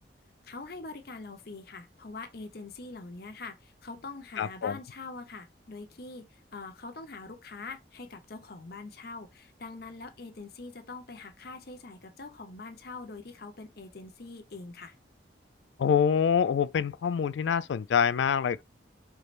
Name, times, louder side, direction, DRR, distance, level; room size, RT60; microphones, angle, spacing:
voice 1, 0.4-14.9, left 3 dB, 60° left, 0.9 m, -43 dB
voice 2, 4.4-4.8 15.8-18.6, left 7 dB, 85° left, 0.3 m, -25 dB
4.6 x 3.2 x 2.5 m
head